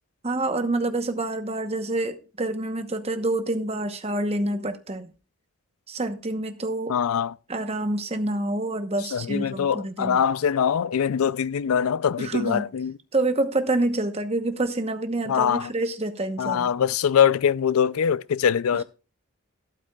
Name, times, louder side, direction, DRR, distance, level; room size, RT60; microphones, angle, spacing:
voice 1, 0.2-5.1 5.9-7.0 7.5-10.2 12.2-12.7 13.1-16.7, right 2 dB, 25° right, 0.9 m, -27 dB
voice 2, 6.9-7.3 9.1-13.0 15.3-15.7 16.4-18.8, left 8 dB, 70° left, 0.4 m, -23 dB
12.5 x 11.5 x 2.3 m
head